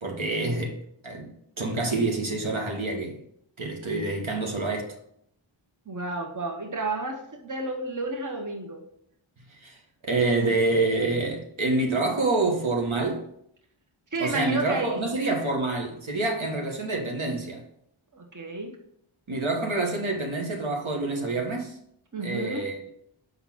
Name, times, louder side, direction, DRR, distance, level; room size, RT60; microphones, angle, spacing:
voice 1, 0.0-0.8 1.0-3.2 3.6-4.9 9.6-9.8 10.0-13.2 14.2-17.6 19.3-21.8 22.2-22.8, right 2 dB, 70° right, 1.4 m, -27 dB
voice 2, 5.9-8.8 14.1-15.0 18.1-18.8 22.1-22.7, right 2 dB, 40° right, 1.2 m, -31 dB
5.5 x 3.9 x 6.0 m
wide cardioid pair, 50°, 49 cm